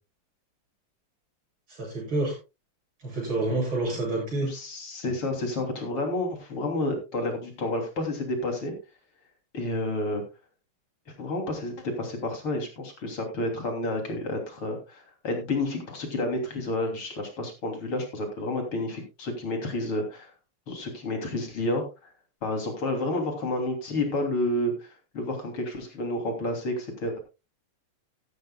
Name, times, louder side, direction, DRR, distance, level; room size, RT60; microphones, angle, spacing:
voice 1, 1.7-2.4 3.0-4.5, right 2 dB, 65° right, -2 dB, 8.9 m, -28 dB
voice 2, 4.4-8.7 9.5-10.2 11.2-20.3 20.7-21.8 22.4-27.2, left 1 dB, 70° left, 3 dB, 3.9 m, -30 dB
15.0 x 12.5 x 2.3 m, 0.28 s
omnidirectional pair, 2.4 m